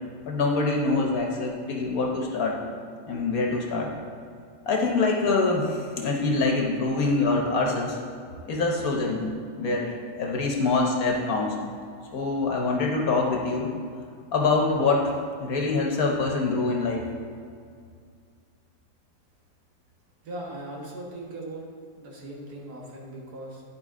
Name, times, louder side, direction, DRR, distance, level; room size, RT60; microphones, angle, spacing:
voice 1, 0.3-2.6 3.1-3.9 4.7-8.0 8.5-11.5 12.1-13.7 14.3-15.1 15.4-17.0, left 3 dB, 60° left, 0 dB, 1.3 m, -25 dB
voice 2, 20.2-21.7 22.0-23.6, right 1 dB, 65° right, -2 dB, 1.8 m, -39 dB
11.0 x 4.7 x 3.7 m, 2.2 s
omnidirectional pair, 1.8 m